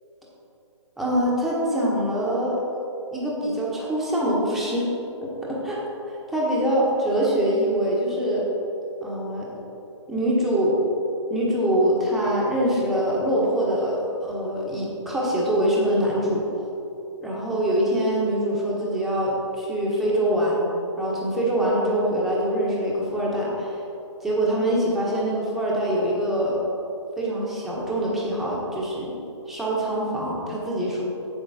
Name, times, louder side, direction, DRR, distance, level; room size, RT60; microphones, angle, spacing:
voice 1, 1.0-2.6 3.1-4.9 5.5-5.8 6.1-8.4 9.0-9.5 10.1-10.8 11.3-16.4 17.2-20.7 21.0-23.8 24.2-26.6 27.2-29.2 29.5-31.0, right 1 dB, ahead, -6 dB, 1.3 m, -24 dB
7.9 x 7.3 x 4.2 m, 2.9 s
hypercardioid pair, 145°, 16 cm